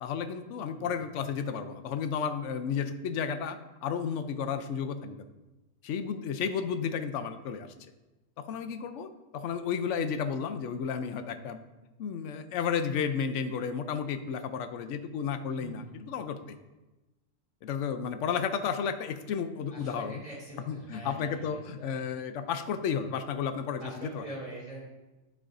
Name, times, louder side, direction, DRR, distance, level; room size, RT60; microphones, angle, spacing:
voice 1, 0.0-5.3 5.8-7.7 8.4-11.6 12.0-16.6 17.6-20.2 20.7-24.3, left 7 dB, 75° left, 9 dB, 0.9 m, -32 dB
voice 2, 15.6-16.0 19.7-22.2 23.8-24.9, right 1 dB, 10° right, -7 dB, 2.4 m, -44 dB
12.0 x 4.7 x 2.5 m, 1.1 s
omnidirectional pair, 1.3 m